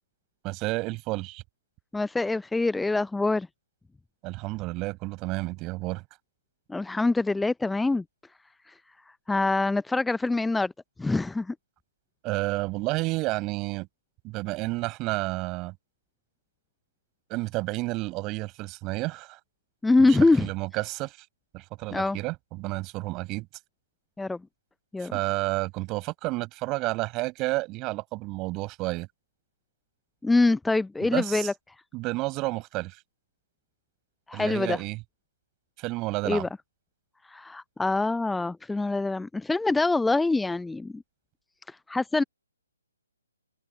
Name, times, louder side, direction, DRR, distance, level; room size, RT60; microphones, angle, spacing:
voice 1, 0.4-1.4 4.2-6.0 12.2-13.9 14.2-15.7 17.3-19.4 20.1-21.2 21.5-23.5 25.0-29.1 31.0-31.5 31.9-33.0 34.3-35.0 35.8-36.5, right 22 dB, 20° right, 6.1 m, -31 dB
voice 2, 1.9-3.5 6.7-8.0 8.7-8.8 9.3-10.7 11.0-11.5 19.8-20.5 21.9-22.2 24.2-24.4 24.9-25.2 30.2-31.5 34.3-34.8 36.3-36.5 37.3-41.0 41.7-42.2, left 3 dB, 5° left, 0.6 m, -24 dB
figure-of-eight pair, 135°, 0 cm